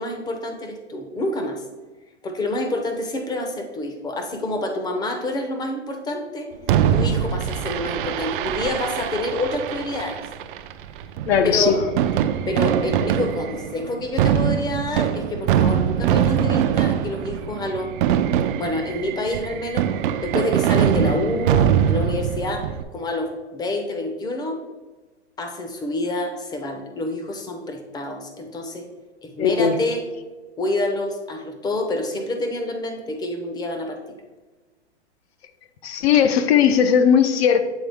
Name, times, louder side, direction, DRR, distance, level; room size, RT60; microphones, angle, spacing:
voice 1, 0.0-1.6 2.2-6.5 6.9-10.2 11.4-11.8 12.5-17.9 18.6-19.9 20.2-24.6 25.4-28.9 29.2-30.0 30.6-34.0, left 1 dB, 10° left, 5 dB, 0.6 m, -27 dB
Fireworks, 6.7-22.8, right 9 dB, 50° right, 0.4 m, -23 dB
voice 2, 11.3-11.8 29.4-29.8 35.8-37.6, left 7 dB, 65° left, 9 dB, 0.7 m, -17 dB
8.0 x 3.5 x 3.5 m, 1.2 s
hypercardioid pair, 130°, 34 cm